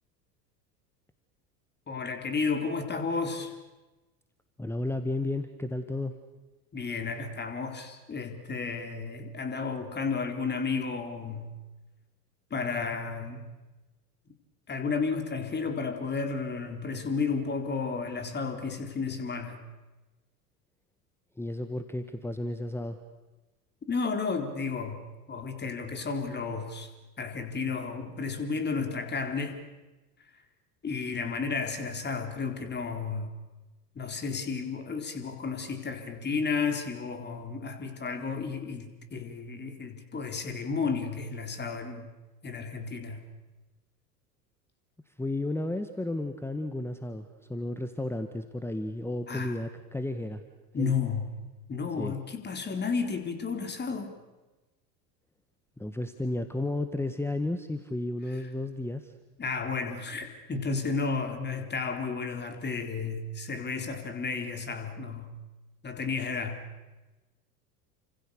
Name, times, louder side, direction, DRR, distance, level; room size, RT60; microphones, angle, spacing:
voice 1, 1.9-3.5 6.7-11.5 12.5-13.5 14.7-19.6 23.9-25.0 25.3-26.9 27.2-29.6 30.8-33.3 34.0-42.1 42.4-43.2 49.3-49.5 50.7-51.3 51.7-54.2 59.4-65.3 65.8-66.6, left 4 dB, 20° left, 6 dB, 4.1 m, -32 dB
voice 2, 4.6-6.2 21.4-23.0 45.2-50.4 50.8-50.9 52.0-52.1 55.8-59.1, left 2 dB, 5° left, 9 dB, 1.5 m, -33 dB
30.0 x 26.0 x 6.9 m, 1.1 s
figure-of-eight pair, 80°, 49 cm